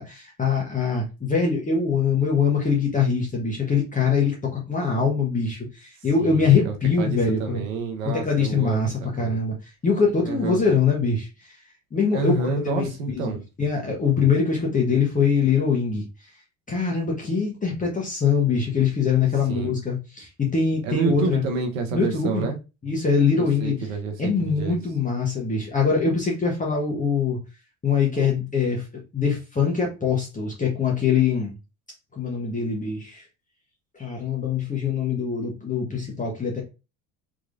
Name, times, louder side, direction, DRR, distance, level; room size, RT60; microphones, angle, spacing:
voice 1, 0.0-7.6 8.1-9.5 9.8-11.6 11.9-16.0 16.7-21.4 21.9-22.4 22.8-23.7 24.2-27.4 27.8-31.5 32.1-33.2 33.9-36.6, left 5 dB, 20° left, 1.2 m, -23 dB
voice 2, 6.2-9.4 10.2-10.6 12.1-13.4 19.5-19.7 20.8-22.6 23.3-24.8, right 4 dB, 80° right, 1.0 m, -29 dB
3.8 x 3.1 x 2.5 m
hypercardioid pair, 75°, 39 cm